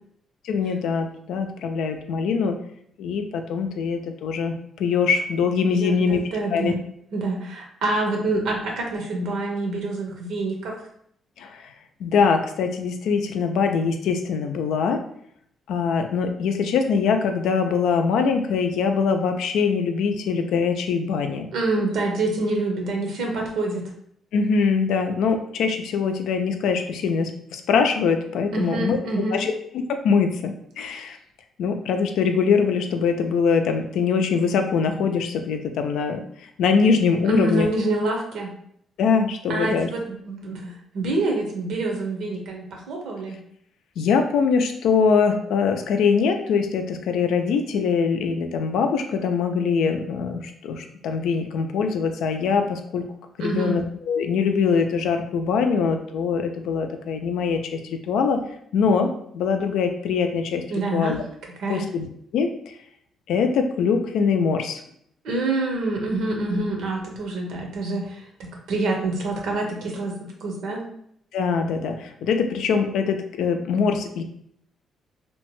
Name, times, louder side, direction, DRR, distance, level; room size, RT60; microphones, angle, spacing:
voice 1, 0.4-2.6 3.0-6.2 6.5-6.7 11.4-11.7 12.0-15.0 15.7-21.5 24.3-29.5 29.9-31.2 31.6-36.2 36.6-37.7 39.0-39.9 44.0-53.1 53.4-58.4 58.7-61.2 61.7-62.0 62.3-62.7 63.3-64.8 71.3-74.2, left 5 dB, 80° left, 6 dB, 0.3 m, -23 dB
voice 2, 5.7-6.8 7.1-10.8 21.5-23.9 28.5-29.4 37.3-38.5 39.5-43.4 53.4-53.8 60.7-61.2 61.6-61.8 65.2-70.8, right 2 dB, 80° right, 1 dB, 0.8 m, -26 dB
2.8 x 2.2 x 3.0 m, 0.68 s
cardioid pair, 90°, 0 cm